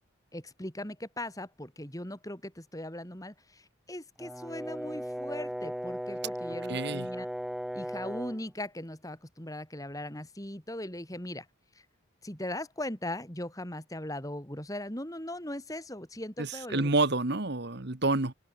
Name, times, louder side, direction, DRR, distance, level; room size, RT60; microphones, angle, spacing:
voice 1, 0.3-7.3 7.7-11.5 12.2-16.9, left 1 dB, 15° left, 3.1 m, -39 dB
Brass instrument, 4.2-8.4, equal, ahead, 0.9 m, -37 dB
voice 2, 6.7-7.1 16.4-18.3, right 2 dB, 50° right, 1.4 m, -28 dB
open air
head